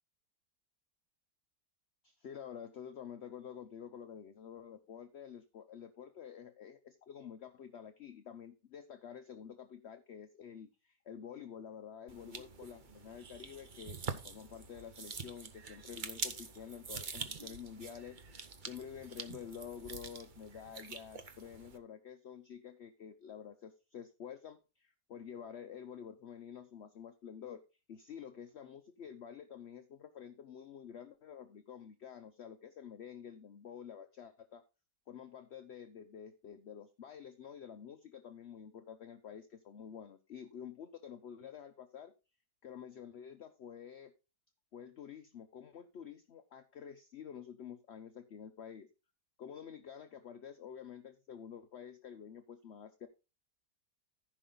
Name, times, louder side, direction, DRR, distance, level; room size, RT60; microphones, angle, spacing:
voice 1, 2.0-27.6 27.9-34.6 35.1-42.1 42.6-44.1 44.7-48.9 49.4-53.1, left 8 dB, 55° left, 8 dB, 0.8 m, -49 dB
sound 1, 12.1-21.8, right 5 dB, 40° right, 0.7 m, -45 dB
14.5 x 5.5 x 3.9 m, 0.30 s
omnidirectional pair, 1.9 m